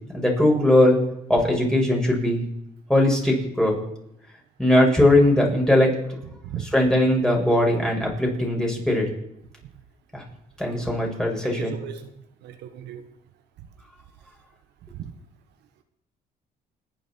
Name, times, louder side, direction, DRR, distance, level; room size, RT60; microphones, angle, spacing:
voice 1, 0.1-1.0 1.3-2.4 2.9-3.8 4.6-5.9 6.6-9.1 10.1-10.2 10.6-11.7, left 1 dB, 5° left, 6.6 m, -20 dB
voice 2, 11.4-12.1 12.4-13.1 13.6-13.7 14.9-15.1, right 9 dB, 80° right, 1.4 m, -36 dB
29.0 x 10.0 x 4.7 m
cardioid pair, 85°, 17 cm